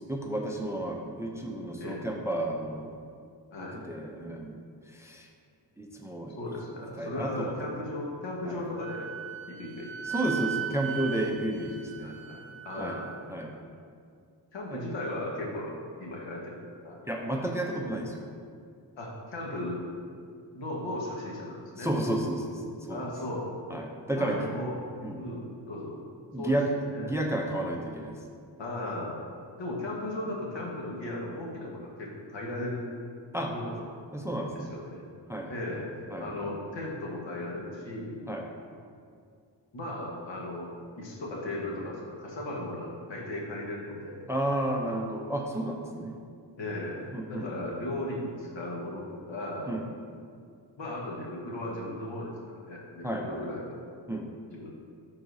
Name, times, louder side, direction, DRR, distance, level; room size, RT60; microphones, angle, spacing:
voice 1, 0.1-2.9 3.9-4.6 4.9-5.3 5.8-6.3 7.0-7.7 8.5-8.6 10.1-12.1 12.8-13.0 13.3-13.5 14.7-14.8 17.1-18.2 21.8-22.6 22.9-23.0 23.7-24.5 25.0-25.2 26.3-26.6 27.0-28.2 33.3-33.5 34.1-34.7 35.3-35.5 36.1-36.5 38.3-38.5 44.3-46.1 47.1-47.7 49.7-49.8 53.0-53.5 54.1-54.3, right 1 dB, 5° right, 1 dB, 0.4 m, -32 dB
voice 2, 1.8-2.1 3.5-3.8 6.4-9.1 9.5-10.2 12.0-13.2 14.5-17.0 19.0-19.8 20.5-21.9 22.9-23.6 24.1-24.7 25.1-26.0 26.4-26.6 26.9-27.2 28.6-29.3 29.6-32.9 33.5-33.9 34.5-35.0 35.5-35.9 36.2-38.2 39.7-40.7 41.0-44.3 44.8-45.3 46.6-49.8 50.8-52.3 52.6-53.8 54.5-54.7, left 1 dB, 80° left, -2 dB, 1.3 m, -36 dB
Wind instrument woodwind instrument, 8.7-13.2, right 9 dB, 75° right, 0.6 m, -38 dB
11.0 x 4.0 x 2.6 m, 2.2 s
wide cardioid pair, 115°, 44 cm